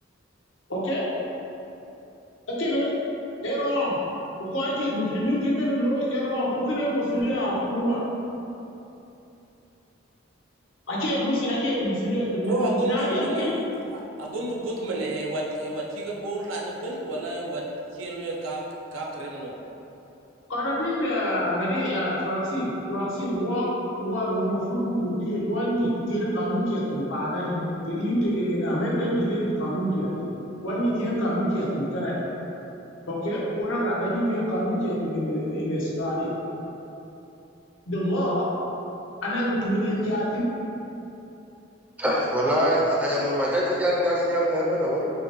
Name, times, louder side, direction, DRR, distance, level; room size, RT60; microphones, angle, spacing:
voice 1, 0.7-1.0 2.5-2.9 3.4-4.0 4.4-8.0 10.9-13.6 20.5-23.7 24.0-30.1 30.6-32.2 33.1-36.3 37.9-38.5 39.2-40.5 44.8-44.9, equal, 80° left, -6 dB, 1.0 m, -26 dB
voice 2, 12.5-13.5 13.9-17.7 17.9-18.6 18.9-19.6, right 2 dB, 90° right, -2 dB, 0.6 m, -30 dB
voice 3, 42.0-45.1, equal, 10° right, -5 dB, 0.5 m, -23 dB
6.0 x 2.2 x 3.1 m, 2.9 s
head